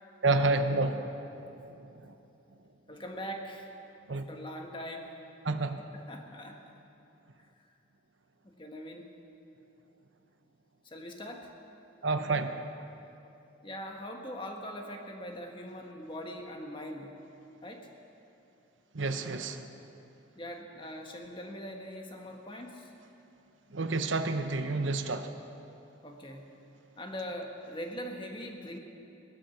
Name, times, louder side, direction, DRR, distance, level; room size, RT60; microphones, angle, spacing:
voice 1, 0.2-1.1 4.1-4.2 5.4-5.8 12.0-12.5 18.9-19.7 23.7-25.3, right 3 dB, 75° right, 8 dB, 0.9 m, -29 dB
voice 2, 2.9-3.7 4.1-5.1 5.9-6.6 8.4-9.1 10.8-11.5 13.6-17.1 17.6-17.9 20.3-22.9 26.0-26.5 27.0-28.8, equal, 25° left, 2 dB, 1.4 m, -41 dB
19.0 x 12.5 x 5.9 m, 2.8 s
head